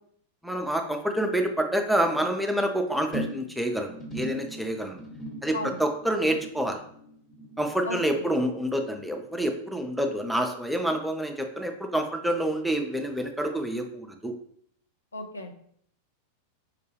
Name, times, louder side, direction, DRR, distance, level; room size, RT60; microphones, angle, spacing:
voice 1, 0.4-5.0 5.4-6.8 7.6-14.3, right 1 dB, ahead, 4 dB, 0.4 m, -27 dB
sound 1, 3.1-9.7 10.0-10.4 10.7-10.8, equal, 20° left, 0.9 m, -41 dB
voice 2, 7.8-8.3 15.1-15.5, left 2 dB, 75° left, 5 dB, 0.4 m, -35 dB
4.8 x 2.2 x 3.2 m, 0.65 s
figure-of-eight pair, 90°, 0 cm